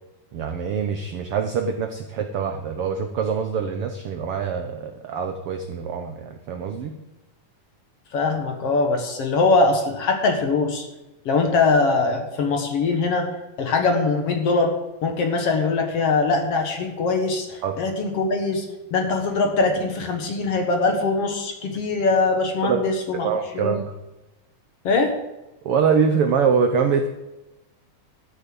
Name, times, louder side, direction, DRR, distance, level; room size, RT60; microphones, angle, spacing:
voice 1, 0.3-6.9 17.6-17.8 22.6-22.8 23.1-23.9 25.6-27.1, right 6 dB, 75° right, 6 dB, 1.3 m, -24 dB
voice 2, 8.1-10.9 11.3-13.3 13.6-14.7 15.0-23.7 24.8-25.1, left 3 dB, 55° left, 3 dB, 2.2 m, -22 dB
13.5 x 6.7 x 7.8 m, 0.99 s
omnidirectional pair, 3.6 m